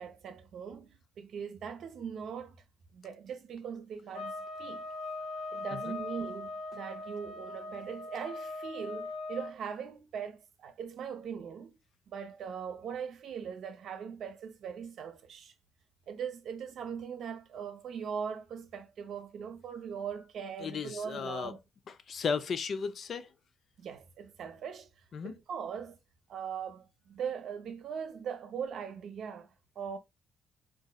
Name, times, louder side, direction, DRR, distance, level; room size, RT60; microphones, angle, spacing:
voice 1, 0.0-2.6 2.9-5.0 5.5-11.8 12.1-15.5 16.1-21.6 23.8-24.9 25.2-26.0 26.3-30.0, right 7 dB, 65° right, 0.6 m, -40 dB
sound 1, 4.1-9.6, left 2 dB, 75° left, 1.1 m, -40 dB
voice 2, 20.6-21.5 22.1-23.3 25.1-25.3, left 6 dB, 55° left, 0.4 m, -35 dB
3.9 x 2.5 x 2.3 m
cardioid pair, 90°, 0 cm